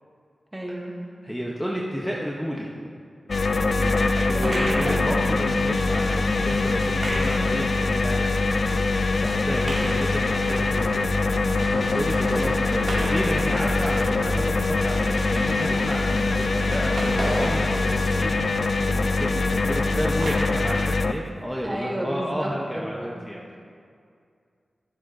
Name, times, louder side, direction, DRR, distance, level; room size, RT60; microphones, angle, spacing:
voice 1, 0.5-1.0 4.3-5.1 7.0-7.5 9.3-10.1 21.6-23.2, right 1 dB, 15° right, 0 dB, 1.3 m, -33 dB
voice 2, 1.2-2.7 3.8-23.6, equal, ahead, -3 dB, 0.8 m, -32 dB
sound 1, 3.3-21.1, left 3 dB, 60° left, 0.3 m, -23 dB
sound 2, 4.1-20.3, right 1 dB, 60° right, 2.2 m, -34 dB
14.0 x 7.2 x 2.6 m, 2.3 s
wide cardioid pair, 65°, 0 cm